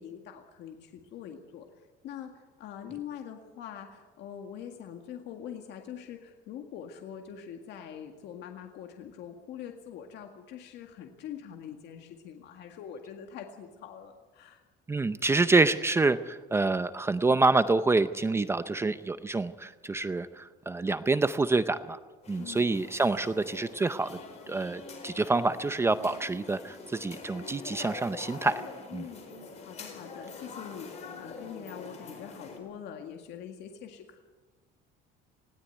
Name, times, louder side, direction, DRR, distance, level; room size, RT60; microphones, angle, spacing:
voice 1, 0.0-14.6 22.4-22.7 28.9-29.3 29.6-34.2, left 9 dB, 60° left, 4 dB, 2.0 m, -44 dB
voice 2, 14.9-22.0 22.3-24.2 24.5-28.6 28.9-29.1, right 3 dB, 15° right, 12 dB, 0.6 m, -27 dB
sound 1, 22.2-32.6, left 3 dB, 35° left, 4.4 m, -45 dB
20.0 x 17.5 x 9.2 m, 1.3 s
cardioid pair, 160°, 20 cm